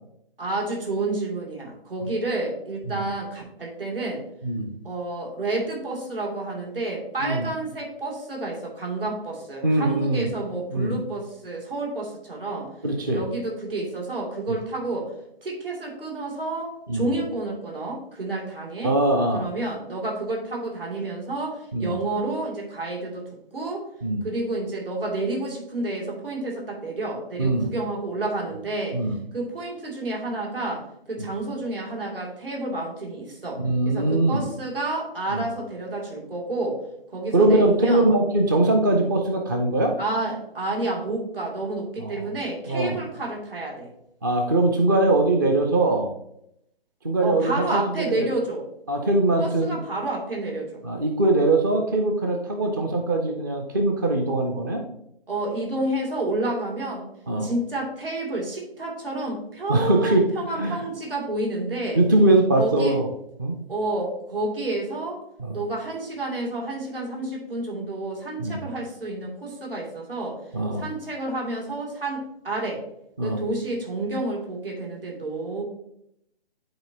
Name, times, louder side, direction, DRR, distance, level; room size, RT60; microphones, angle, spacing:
voice 1, 0.4-4.2 4.8-12.7 13.1-15.1 15.4-18.9 19.3-23.3 23.5-23.9 24.2-29.0 29.3-36.8 37.1-38.1 40.0-43.9 47.2-48.7 49.4-50.8 52.6-52.7 55.3-57.1 57.4-62.0 62.6-63.0 63.7-65.2 65.5-70.4 70.8-72.8 73.2-75.6, right 2 dB, 65° right, -1 dB, 2.7 m, -30 dB
voice 2, 4.4-4.7 7.2-7.5 9.6-10.3 10.7-11.0 12.8-13.2 14.5-14.6 16.9-17.1 18.8-19.4 21.7-21.9 24.0-24.2 27.4-27.7 28.9-29.2 31.2-31.3 33.6-34.4 35.3-35.5 37.3-39.9 42.0-42.3 42.7-43.0 44.2-46.1 47.0-48.3 48.9-49.8 50.8-54.8 57.3-57.5 59.7-60.3 60.6-60.8 62.0-63.1 63.4-63.6 65.4-65.6 68.4-68.6 70.5-70.8 73.2-73.4, right 2 dB, 20° right, 4 dB, 0.4 m, -22 dB
10.5 x 4.2 x 2.8 m, 0.76 s
figure-of-eight pair, 135°, 31 cm